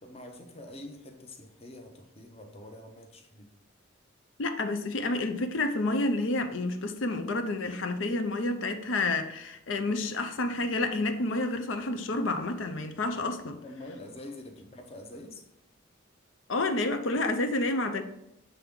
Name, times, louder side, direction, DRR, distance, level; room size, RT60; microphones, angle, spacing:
voice 1, 0.0-3.5 13.6-15.5, left 1 dB, 30° left, 0.8 m, -45 dB
voice 2, 4.4-13.6 16.5-18.0, left 2 dB, 70° left, 0.6 m, -29 dB
7.6 x 3.4 x 3.7 m
head